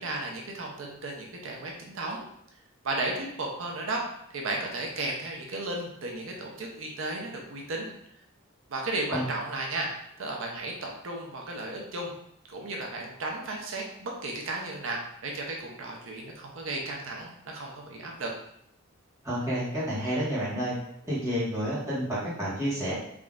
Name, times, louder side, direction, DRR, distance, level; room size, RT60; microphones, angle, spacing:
voice 1, 0.0-2.2 2.8-4.0 4.3-7.9 8.7-12.1 12.5-18.3, right 2 dB, 65° right, 0 dB, 0.6 m, -34 dB
voice 2, 19.2-20.7 21.0-22.9, equal, 15° right, -9 dB, 1.4 m, -29 dB
3.7 x 3.1 x 2.4 m, 0.75 s
head